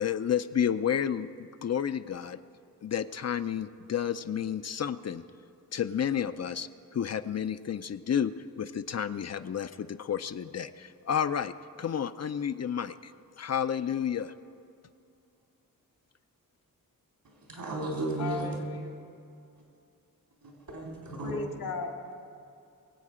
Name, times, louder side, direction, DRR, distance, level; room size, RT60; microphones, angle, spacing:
voice 1, 0.0-2.4 2.8-5.2 5.7-13.1 13.4-14.3, left 8 dB, 50° left, 0.5 m, -31 dB
voice 2, 17.5-18.5 20.4-21.5, right 2 dB, 70° right, 3.9 m, -34 dB
voice 3, 18.2-18.9 21.2-22.1, left 3 dB, 85° left, 2.3 m, -36 dB
22.5 x 8.4 x 5.0 m
cardioid pair, 75°, 35 cm